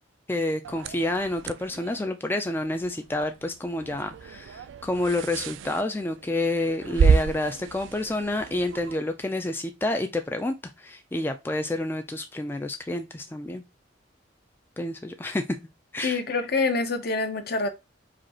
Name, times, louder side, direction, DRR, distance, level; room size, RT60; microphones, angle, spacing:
voice 1, 0.3-13.6 14.8-15.4 15.9-16.2, left 1 dB, 10° left, 0.3 m, -29 dB
sound 1, 0.6-9.0, right 5 dB, 75° right, 0.3 m, -30 dB
voice 2, 16.0-17.7, left 3 dB, 55° left, 0.8 m, -26 dB
5.0 x 2.4 x 4.2 m
head